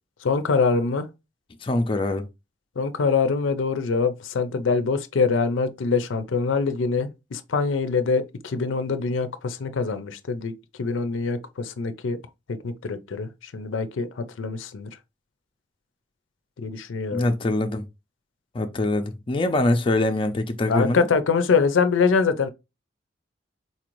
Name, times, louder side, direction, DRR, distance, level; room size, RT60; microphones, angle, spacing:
voice 1, 0.2-1.1 2.8-10.5 10.8-12.2 12.6-14.9 16.6-17.3 20.7-22.5, left 4 dB, 85° left, 0.5 m, -24 dB
voice 2, 1.6-2.3 17.1-17.9 18.5-21.1, left 2 dB, 25° left, 0.4 m, -24 dB
4.0 x 2.5 x 3.0 m
head